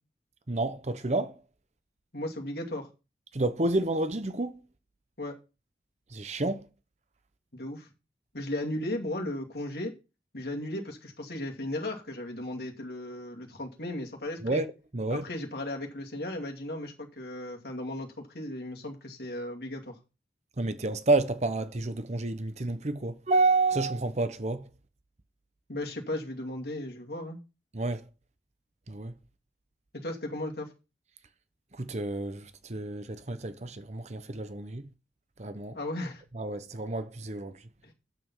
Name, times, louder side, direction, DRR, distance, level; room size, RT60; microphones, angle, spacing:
voice 1, 0.5-1.4 3.3-4.6 6.1-6.7 14.4-15.2 20.6-24.7 27.7-28.0 28.9-29.1 31.7-34.9 35.4-35.8 36.3-37.6, right 2 dB, 40° right, 0.9 m, -29 dB
voice 2, 2.1-2.9 5.2-5.3 7.5-7.9 8.3-9.9 10.3-14.6 15.1-20.0 25.7-27.4 30.0-30.7 35.7-36.2 37.8-37.9, left 1 dB, 60° left, 2.4 m, -36 dB
9.1 x 7.0 x 5.5 m
head